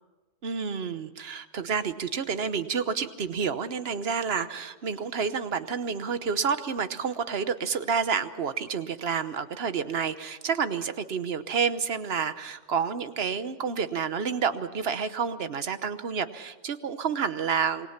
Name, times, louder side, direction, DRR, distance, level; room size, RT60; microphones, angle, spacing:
voice 1, 0.4-17.9, right 6 dB, 65° right, 11 dB, 1.2 m, -29 dB
27.5 x 20.5 x 5.9 m, 1.2 s
omnidirectional pair, 1.1 m